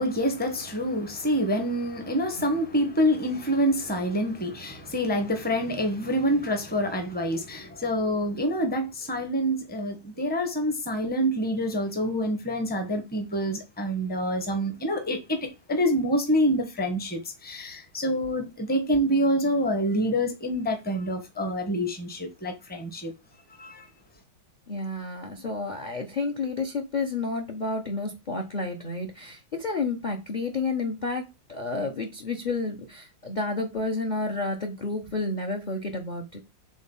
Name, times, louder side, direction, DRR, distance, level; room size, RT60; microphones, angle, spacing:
voice 1, 0.0-23.1 23.6-23.9, equal, 5° left, 0.7 m, -27 dB
voice 2, 24.7-36.4, left 3 dB, 40° left, 0.6 m, -30 dB
5.2 x 3.9 x 5.4 m
omnidirectional pair, 2.2 m